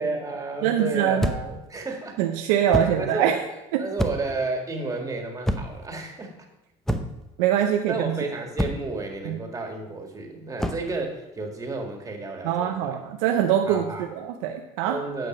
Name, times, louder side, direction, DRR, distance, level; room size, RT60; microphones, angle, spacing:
voice 1, 0.0-2.2 2.7-3.4 3.8-6.3 7.9-13.0 13.6-14.1 14.9-15.3, right 3 dB, 20° right, 2 dB, 1.9 m, -32 dB
voice 2, 0.6-1.3 2.2-3.4 3.7-3.8 7.4-8.2 9.3-9.4 12.4-15.0, right 10 dB, 85° right, 4 dB, 0.6 m, -23 dB
sound 1, 1.2-1.6 2.7-3.0 4.0-4.4 5.4-5.9 6.9-7.3 8.6-9.0 10.6-10.9, equal, ahead, 0.7 m, -27 dB
9.2 x 5.8 x 5.2 m, 0.96 s
supercardioid pair, 105°, 16 cm